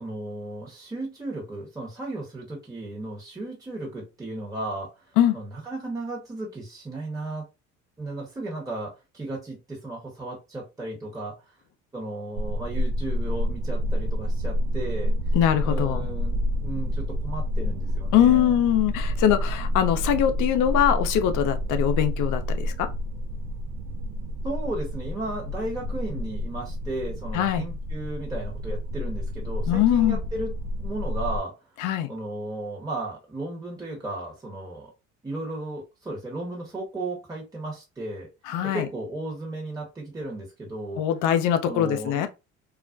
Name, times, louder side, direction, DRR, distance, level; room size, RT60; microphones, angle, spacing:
voice 1, 0.0-4.9 5.3-7.4 8.0-11.3 11.9-15.1 15.6-18.6 24.4-30.5 30.8-31.5 32.1-34.9 35.2-38.3 38.7-41.0 41.6-42.2, right 2 dB, 10° right, 0.9 m, -35 dB
sound 1, 12.4-31.4, equal, 60° right, 0.4 m, -29 dB
voice 2, 15.3-16.1 18.1-22.9 27.3-27.6 29.7-30.2 31.8-32.1 38.5-38.9 41.0-42.3, left 10 dB, 65° left, 0.5 m, -22 dB
2.3 x 2.1 x 2.5 m
hypercardioid pair, 70°, 34 cm